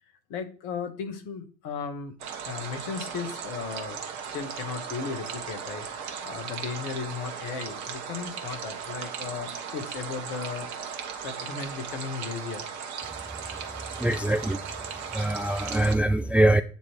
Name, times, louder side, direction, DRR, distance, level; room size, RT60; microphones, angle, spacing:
voice 1, 0.3-2.1 2.4-4.0 4.3-10.7 11.2-12.7, left 5 dB, 60° left, 1.8 m, -36 dB
sound 1, 2.2-16.0, right 6 dB, 55° right, 1.7 m, -37 dB
voice 2, 14.0-14.6 15.1-16.6, right 1 dB, 5° right, 0.4 m, -23 dB
9.0 x 3.2 x 4.6 m
hypercardioid pair, 70°, 34 cm